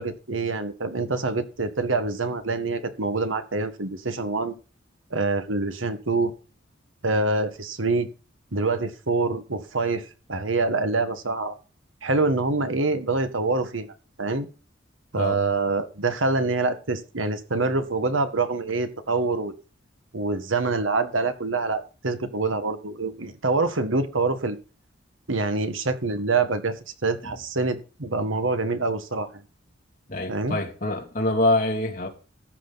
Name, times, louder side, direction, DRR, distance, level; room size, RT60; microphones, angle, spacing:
voice 1, 0.0-4.5 5.1-6.3 7.0-8.1 8.5-11.5 12.0-13.9 14.2-14.5 15.1-19.5 20.1-24.6 25.3-29.4 30.3-30.6, right 3 dB, 85° right, 1.6 m, -25 dB
voice 2, 30.1-32.1, left 2 dB, 45° left, 2.6 m, -25 dB
14.0 x 9.0 x 4.1 m
head